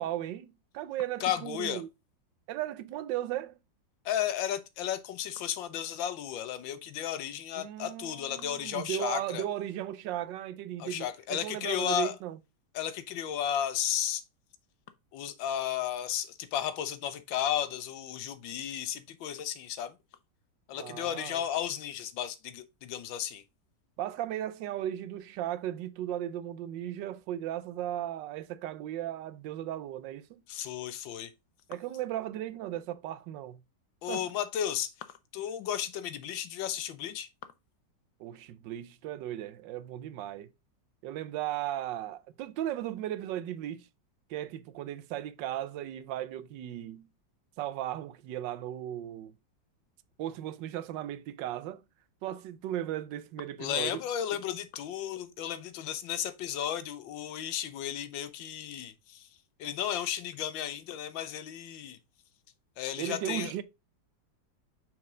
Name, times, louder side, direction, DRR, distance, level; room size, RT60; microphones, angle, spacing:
voice 1, 0.0-1.9 2.5-3.5 7.6-11.0 11.3-12.4 20.8-21.4 24.0-30.4 31.7-33.6 34.1-34.3 38.2-40.5 41.0-43.9 44.3-47.1 47.6-49.3 50.2-51.8 52.2-54.0 63.0-63.6, right 12 dB, 80° right, 1.3 m, -36 dB
voice 2, 1.2-1.8 4.0-9.4 10.8-12.1 12.7-14.2 15.1-19.9 20.7-23.4 30.5-31.3 34.0-34.9 35.3-37.3 53.6-59.3 59.6-62.0 62.8-63.5, left 10 dB, 90° left, 1.5 m, -34 dB
6.0 x 4.4 x 3.7 m
omnidirectional pair, 2.0 m